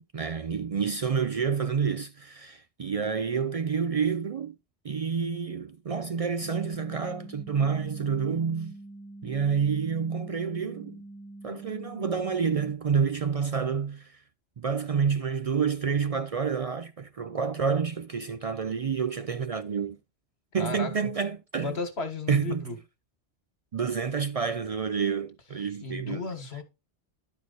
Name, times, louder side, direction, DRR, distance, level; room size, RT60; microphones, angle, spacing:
voice 1, 0.0-4.5 4.8-8.8 9.2-11.0 11.4-14.2 14.6-20.0 20.5-21.7 22.3-22.7 23.7-26.2, right 6 dB, 60° right, 0.3 m, -28 dB
sound 1, 6.4-12.7, right 2 dB, 10° left, 1.2 m, -45 dB
voice 2, 20.6-20.9 21.6-22.8 25.8-26.6, left 3 dB, 70° left, 1.8 m, -34 dB
11.5 x 4.7 x 4.0 m
omnidirectional pair, 1.1 m